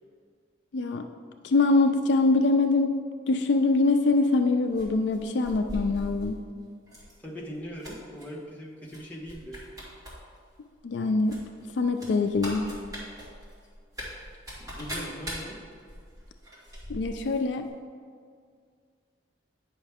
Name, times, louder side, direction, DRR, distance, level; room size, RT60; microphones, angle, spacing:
voice 1, 0.7-1.0 1.4-3.0 3.3-6.4 10.8-11.5 11.8-12.7 16.9-17.7, left 3 dB, 65° left, 6 dB, 0.4 m, -24 dB
sound 1, 4.7-6.3 6.9-7.1 7.5-8.2 8.9-9.0 9.3-10.1 10.4-10.5 11.3-17.4 17.7-17.8, equal, 15° right, 2.0 m, -40 dB
voice 2, 7.2-9.7 14.6-15.6, equal, 10° left, -4 dB, 0.9 m, -40 dB
9.1 x 5.6 x 3.5 m, 2.1 s
head